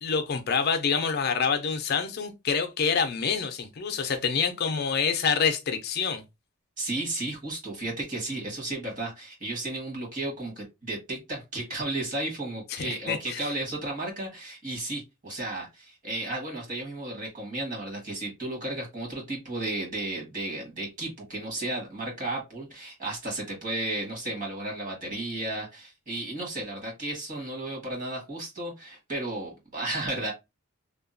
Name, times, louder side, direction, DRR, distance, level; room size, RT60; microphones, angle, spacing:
voice 1, 0.0-6.2 12.7-13.4, left 6 dB, 50° left, 0.4 m, -27 dB
voice 2, 6.8-30.3, right 2 dB, 40° right, 1.3 m, -33 dB
2.8 x 2.2 x 2.5 m
head